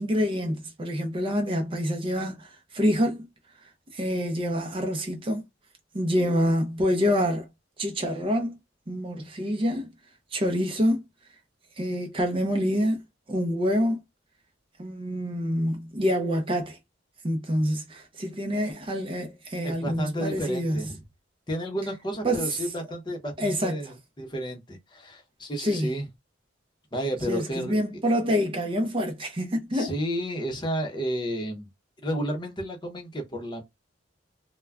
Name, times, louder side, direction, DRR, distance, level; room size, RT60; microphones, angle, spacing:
voice 1, 0.0-3.3 3.9-5.4 5.9-7.5 7.8-8.6 8.9-9.9 10.3-11.0 11.8-13.0 13.3-14.0 14.8-16.8 17.2-20.8 22.2-22.6 23.4-23.9 25.6-25.9 27.3-29.9, equal, 30° right, 0.5 m, -26 dB
voice 2, 19.6-21.0 21.5-26.1 26.9-27.8 29.7-31.7 32.0-33.6, equal, 25° left, 0.7 m, -31 dB
2.2 x 2.2 x 3.4 m
head